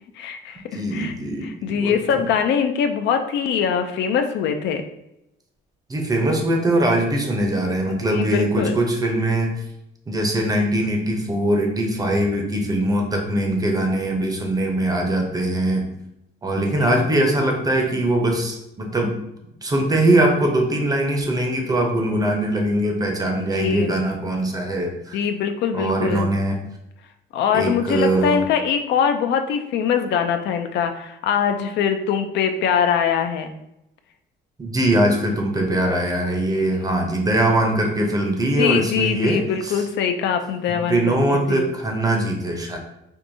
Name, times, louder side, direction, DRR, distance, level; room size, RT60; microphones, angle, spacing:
voice 1, 0.2-1.1 1.4-4.8 7.9-8.7 16.6-17.0 23.4-23.9 25.1-26.3 27.3-33.5 38.6-41.2 41.5-41.7, left 7 dB, 70° left, 7 dB, 0.4 m, -23 dB
voice 2, 0.7-1.9 5.9-9.5 10.1-15.9 16.4-19.2 19.6-25.2 25.7-26.6 27.5-28.4 34.6-39.8 40.7-42.8, right 1 dB, 20° right, 2 dB, 0.6 m, -21 dB
4.6 x 2.6 x 2.6 m, 0.84 s
cardioid pair, 160°, 19 cm